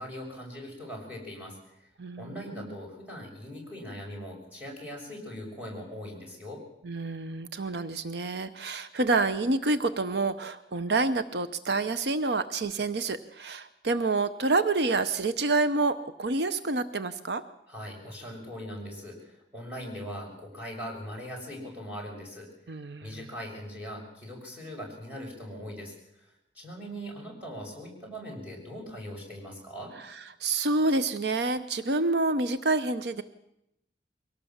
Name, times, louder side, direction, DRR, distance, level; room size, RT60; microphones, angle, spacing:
voice 1, 0.0-1.6 2.2-6.6 17.7-22.5 23.0-26.2 26.5-29.9, equal, 10° right, -2 dB, 6.5 m, -40 dB
voice 2, 2.0-2.7 6.8-17.4 22.7-23.1 30.4-33.2, right 3 dB, 70° right, 12 dB, 0.8 m, -28 dB
23.0 x 17.5 x 7.3 m, 0.84 s
head